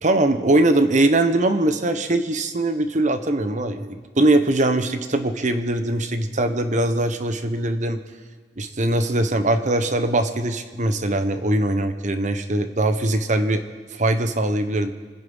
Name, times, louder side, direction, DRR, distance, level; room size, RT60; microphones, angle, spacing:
voice 1, 0.0-8.0 8.6-13.6 13.9-14.9, right 1 dB, 40° right, 9 dB, 1.0 m, -21 dB
26.0 x 10.0 x 5.5 m, 1.5 s
head